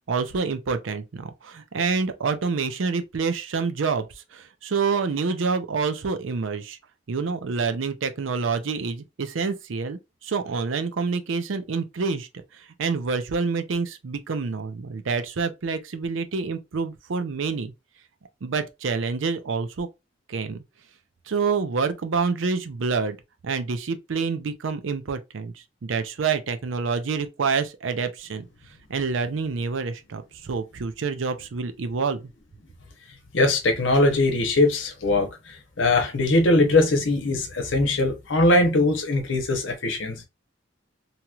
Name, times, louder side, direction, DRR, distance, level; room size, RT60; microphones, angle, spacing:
voice 1, 0.1-6.8 7.1-17.7 18.4-19.9 20.3-20.6 21.3-23.2 23.4-28.5 28.9-32.3, right 5 dB, 80° right, 0.5 m, -27 dB
voice 2, 33.3-35.3 35.8-40.2, left 2 dB, 70° left, 0.9 m, -21 dB
2.9 x 2.9 x 2.3 m
head